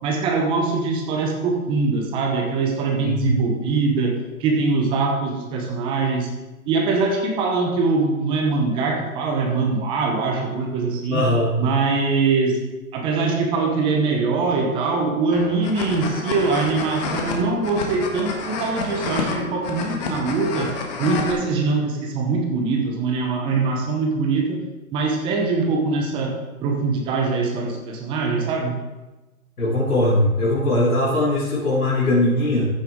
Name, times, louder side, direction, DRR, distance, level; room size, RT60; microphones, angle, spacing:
voice 1, 0.0-6.3 6.7-11.2 11.6-12.6 12.9-20.7 21.0-24.6 24.9-28.8, right 4 dB, 10° right, 2 dB, 0.7 m, -22 dB
voice 2, 11.1-11.5 29.6-32.7, left 1 dB, 80° left, -8 dB, 3.3 m, -20 dB
sound 1, 15.3-21.3, left 4 dB, 30° left, 1.4 m, -29 dB
14.0 x 6.4 x 3.6 m, 1.1 s
hypercardioid pair, 145°, 44 cm